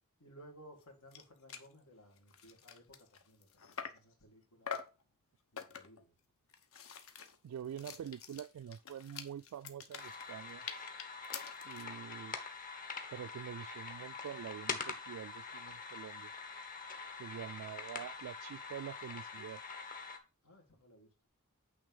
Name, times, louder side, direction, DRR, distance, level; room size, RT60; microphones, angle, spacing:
voice 1, 0.2-4.8 5.5-6.1 20.4-21.1, equal, 80° left, 2.1 m, -59 dB
sound 1, 0.8-0.9 1.1-1.2 1.5-1.7 2.2-4.1 4.7-5.0 5.6-6.0 6.5-11.9, left 7 dB, 65° left, 1.0 m, -46 dB
voice 2, 7.4-10.7 11.6-12.4 13.1-16.3 17.2-19.6, right 9 dB, 80° right, 0.3 m, -46 dB
sound 2, 10.0-20.2, left 4 dB, 40° left, 1.1 m, -45 dB
8.7 x 3.4 x 5.3 m
head